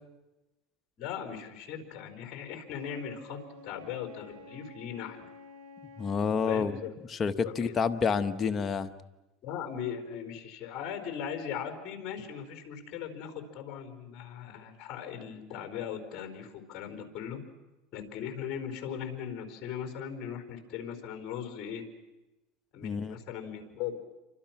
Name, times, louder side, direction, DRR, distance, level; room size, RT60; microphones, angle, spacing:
voice 1, 1.0-5.3 6.5-7.8 9.4-17.4 17.9-21.8 22.7-24.0, left 8 dB, 45° left, 7 dB, 4.6 m, -39 dB
Wind instrument woodwind instrument, 2.8-6.3, left 2 dB, 85° right, 7.8 m, -50 dB
voice 2, 6.0-6.8 7.1-8.9 22.8-23.2, left 5 dB, 30° left, 9 dB, 1.3 m, -29 dB
29.5 x 25.0 x 6.1 m, 1.0 s
supercardioid pair, 120°, 0 cm